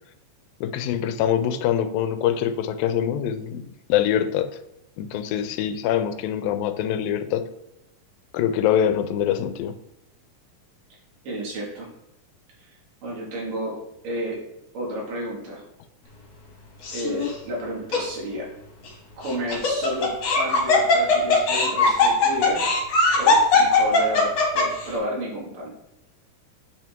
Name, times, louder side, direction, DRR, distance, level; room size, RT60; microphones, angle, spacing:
voice 1, 0.6-4.5 5.0-7.5 8.3-9.8, left 10 dB, 85° left, 9 dB, 2.3 m, -24 dB
voice 2, 11.3-11.9 12.7-14.4 14.7-15.6 16.9-18.5 19.2-22.7 23.1-25.7, equal, 70° right, -3 dB, 3.6 m, -31 dB
Laughter, 16.8-17.3 17.9-18.0 19.3-24.9, left 3 dB, 50° left, 2.6 m, -19 dB
8.4 x 5.6 x 3.6 m, 0.87 s
omnidirectional pair, 4.0 m